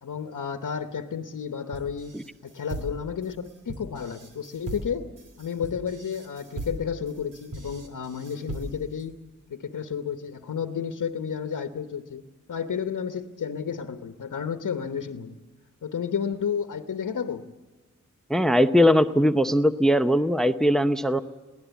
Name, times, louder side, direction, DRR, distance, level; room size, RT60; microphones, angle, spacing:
voice 1, 0.0-2.2 2.4-5.1 5.4-9.2 9.5-15.4 15.8-17.4, left 7 dB, 85° left, 7 dB, 1.1 m, -32 dB
sound 1, 1.7-9.0, right 1 dB, 90° right, 3.0 m, -39 dB
voice 2, 18.3-21.2, equal, ahead, 10 dB, 0.7 m, -20 dB
22.5 x 17.0 x 8.2 m, 1.3 s
wide cardioid pair, 100°, 31 cm